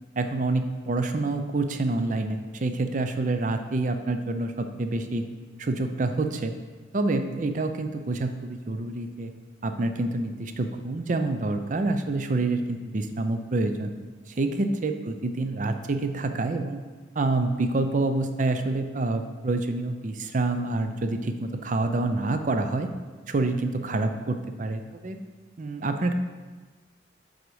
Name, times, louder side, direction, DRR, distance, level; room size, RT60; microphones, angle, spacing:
voice 1, 0.2-5.3 5.6-6.5 6.9-9.3 9.6-13.9 14.3-16.8 17.2-22.9 23.3-25.2 25.6-26.1, right 2 dB, 40° right, 7 dB, 0.5 m, -27 dB
7.7 x 4.0 x 4.8 m, 1.4 s
head